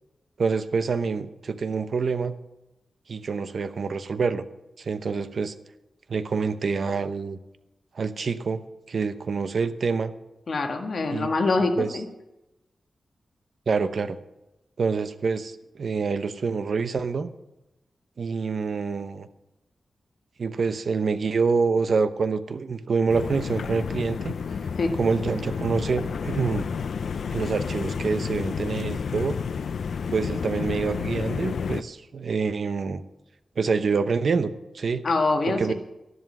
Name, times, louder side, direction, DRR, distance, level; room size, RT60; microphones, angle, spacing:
voice 1, 0.4-2.3 3.1-4.4 4.8-5.5 6.1-7.4 7.9-8.6 8.9-10.1 11.1-11.3 11.8-11.9 13.7-14.2 14.8-17.3 18.2-19.3 20.4-24.4 25.0-26.7 27.3-29.4 30.1-33.0 33.6-35.0 35.5-35.7, right 5 dB, 55° right, 11 dB, 0.9 m, -26 dB
voice 2, 10.5-12.0 24.8-24.9 35.0-35.7, left 3 dB, 55° left, 5 dB, 1.7 m, -24 dB
sound 1, 23.1-31.8, left 6 dB, 75° left, 0.5 m, -30 dB
13.0 x 11.0 x 6.1 m, 0.94 s
wide cardioid pair, 135°, 0 cm